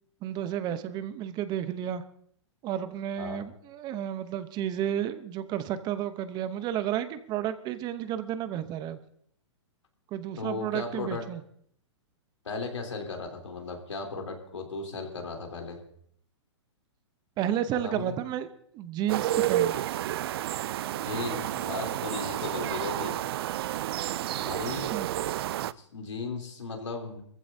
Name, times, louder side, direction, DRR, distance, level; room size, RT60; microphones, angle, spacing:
voice 1, 0.2-2.0 2.6-9.0 10.1-11.4 17.4-18.5 18.7-19.7 24.8-25.1, right 10 dB, 30° right, 12 dB, 0.9 m, -32 dB
voice 2, 10.4-11.2 12.4-15.8 17.7-18.1 20.9-23.2 24.4-24.9 25.6-27.2, left 4 dB, 90° left, 2 dB, 3.3 m, -36 dB
sound 1, 19.1-25.7, right 13 dB, 55° right, 0.4 m, -30 dB
21.0 x 15.0 x 2.7 m, 0.65 s
hypercardioid pair, 130°, 15 cm